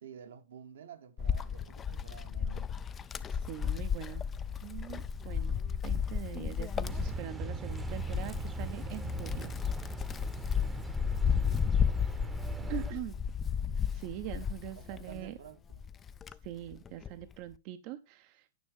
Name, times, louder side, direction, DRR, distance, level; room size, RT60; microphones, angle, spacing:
voice 1, 0.0-2.7 12.6-13.0 14.7-15.8, right 8 dB, 75° right, 1.2 m, -51 dB
Wind, 1.2-15.3 15.7-17.2, left 7 dB, 20° left, 0.3 m, -33 dB
voice 2, 3.3-4.2 4.6-9.5 12.7-13.2 13.9-15.4 16.4-18.5, right 14 dB, 40° right, 0.6 m, -43 dB
sound 1, 6.8-12.9, right 3 dB, 10° right, 0.8 m, -40 dB
9.5 x 6.2 x 3.4 m
hypercardioid pair, 140°, 0 cm